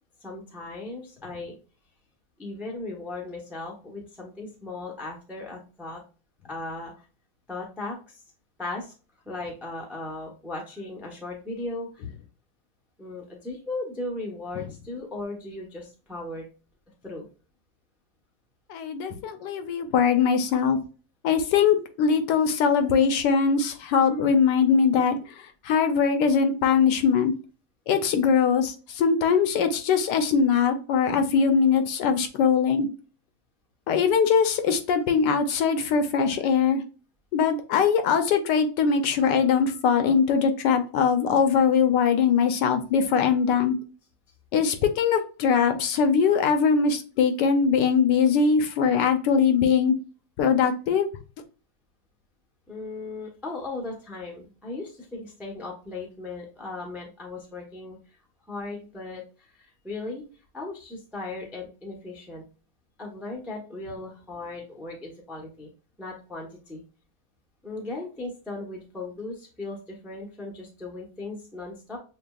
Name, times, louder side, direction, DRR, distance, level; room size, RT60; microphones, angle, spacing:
voice 1, 0.2-1.5 2.4-6.0 6.4-7.0 7.5-8.2 8.6-8.9 9.2-12.0 13.0-16.4 17.0-17.3 52.7-58.0 58.5-60.2 60.5-62.4 63.0-65.7 66.0-66.8 67.6-72.0, left 2 dB, 5° right, -1 dB, 0.3 m, -37 dB
voice 2, 18.7-20.8 21.2-25.2 25.7-27.3 27.9-32.9 33.9-36.8 37.3-43.8 44.5-49.9 50.4-51.1, left 6 dB, 75° left, 7 dB, 1.2 m, -21 dB
6.7 x 2.3 x 2.3 m, 0.35 s
omnidirectional pair, 2.0 m